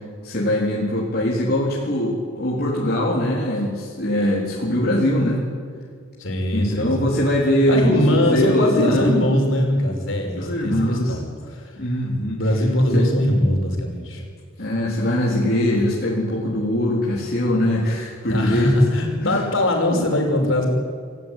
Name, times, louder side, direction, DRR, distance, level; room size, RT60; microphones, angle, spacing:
voice 1, 0.2-5.4 6.5-9.2 10.4-11.1 11.8-12.4 12.9-13.1 14.6-18.7 19.2-19.4, left 1 dB, 50° left, -5 dB, 4.1 m, -21 dB
voice 2, 6.2-7.2 7.7-12.1 12.3-14.2 18.3-20.7, left 1 dB, 70° left, 2 dB, 5.8 m, -21 dB
28.0 x 15.5 x 9.3 m, 2.2 s
head